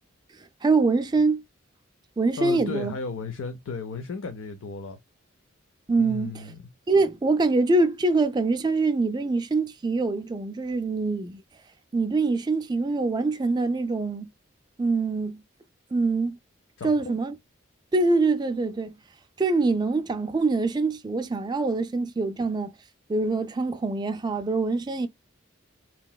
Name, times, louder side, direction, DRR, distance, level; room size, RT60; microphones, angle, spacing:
voice 1, 0.3-1.4 2.2-2.9 5.9-6.5 6.9-11.4 11.9-14.3 14.8-15.4 15.9-16.4 16.8-17.3 17.9-19.0 19.4-22.8 23.1-25.1, right 3 dB, 20° right, 0.3 m, -24 dB
voice 2, 2.4-5.0 6.0-6.6 16.8-17.2, left 4 dB, 80° left, 0.5 m, -34 dB
3.0 x 2.8 x 2.2 m
head